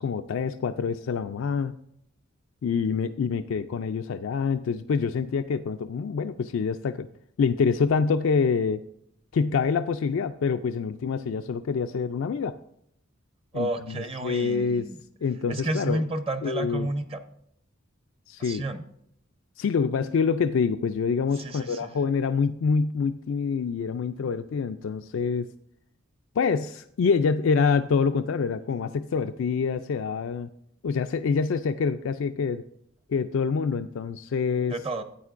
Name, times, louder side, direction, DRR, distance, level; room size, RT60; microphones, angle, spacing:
voice 1, 0.0-1.7 2.6-7.1 7.4-8.8 9.3-12.6 13.5-14.9 15.2-16.0 16.4-16.9 18.3-18.6 19.6-25.5 26.4-30.5 30.8-32.6 33.1-34.7, left 5 dB, 70° left, 8 dB, 0.4 m, -26 dB
voice 2, 13.5-15.0 15.5-17.2 18.4-18.8 21.4-21.9 34.7-35.0, right 2 dB, 30° right, 9 dB, 0.7 m, -31 dB
12.5 x 8.7 x 2.5 m, 0.72 s
head